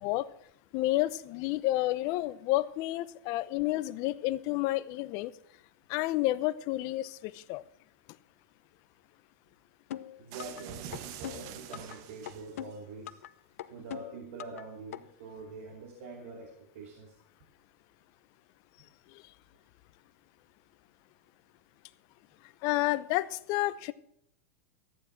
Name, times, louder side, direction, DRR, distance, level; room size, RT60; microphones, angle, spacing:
voice 1, 0.7-5.3 5.9-7.6 19.1-19.2 22.6-23.9, left 17 dB, 50° left, 16 dB, 0.8 m, -30 dB
sound 1, 9.9-10.6 10.9-12.0 12.3-13.3 13.6-14.6 14.9-15.0, left 12 dB, 80° left, 0.9 m, -41 dB
voice 2, 10.2-13.2 13.7-17.2, right 3 dB, 70° right, 2 dB, 2.7 m, -45 dB
sound 2, 10.3-12.8, right 9 dB, 50° right, 1.5 m, -45 dB
14.0 x 10.0 x 5.8 m, 0.71 s
hypercardioid pair, 125°, 8 cm